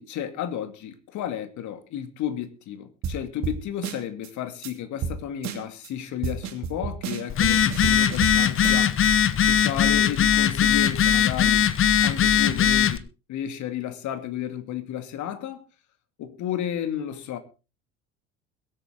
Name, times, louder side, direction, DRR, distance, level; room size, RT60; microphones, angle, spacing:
voice 1, 0.0-9.0 9.4-11.7 12.0-15.6 16.2-17.4, left 10 dB, 50° left, 2.4 m, -32 dB
sound 1, 3.0-3.2 3.4-3.6 3.8-4.3 4.6-4.7 5.0-5.2 5.4-5.9 6.2-8.4 8.6-9.1, right 6 dB, 45° right, 2.7 m, -30 dB
Telephone, 7.3-13.0, left 9 dB, 35° left, 1.2 m, -20 dB
22.5 x 8.7 x 3.8 m
figure-of-eight pair, 65°, 37 cm